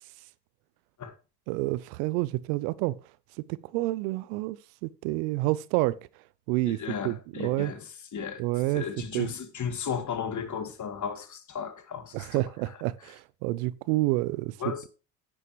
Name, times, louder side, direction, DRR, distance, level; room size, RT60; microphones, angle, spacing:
voice 1, 1.5-3.0 3.4-4.6 4.8-6.0 6.5-6.8 7.0-7.7 8.4-8.8 9.1-9.3 12.1-14.6, right 19 dB, 70° right, 0.6 m, -28 dB
voice 2, 6.7-12.8 14.6-14.9, left 7 dB, 35° left, 1.9 m, -35 dB
9.8 x 9.1 x 3.1 m
hypercardioid pair, 65°, 48 cm